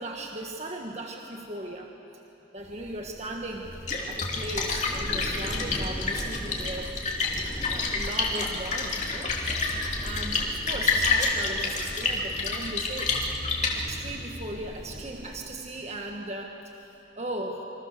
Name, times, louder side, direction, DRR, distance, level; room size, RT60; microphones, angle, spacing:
voice 1, 0.0-1.9 2.5-3.7 4.1-6.9 7.7-13.2 13.7-16.5 17.2-17.6, right 1 dB, 35° right, 2 dB, 1.5 m, -37 dB
sound 1, 2.6-15.3, equal, 15° right, 6.4 m, -41 dB
Splash splatter, 3.6-14.2, left 3 dB, 40° left, 2.9 m, -29 dB
28.0 x 25.5 x 6.9 m, 2.9 s
head